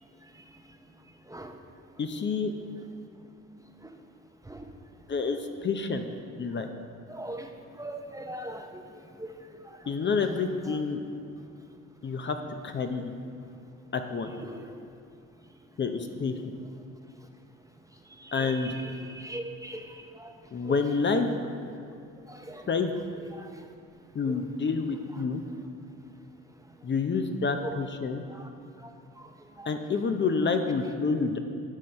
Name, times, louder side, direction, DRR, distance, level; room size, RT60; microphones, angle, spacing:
voice 1, 2.0-2.5 5.1-6.1 6.4-6.7 9.9-11.0 12.0-12.4 12.6-13.1 13.9-14.3 15.8-16.3 18.3-18.7 20.5-21.3 22.7-22.9 24.1-25.4 26.8-28.2 29.7-31.4, left 4 dB, 40° left, 6 dB, 0.7 m, -28 dB
voice 2, 7.1-7.5 7.8-8.8 9.2-9.3 14.4-14.6 18.4-18.5 19.2-19.9 20.2-20.3 22.3-22.6 29.6-29.7, right 1 dB, 10° right, 4 dB, 0.6 m, -39 dB
11.5 x 4.1 x 6.5 m, 2.4 s
cardioid pair, 90°, 30 cm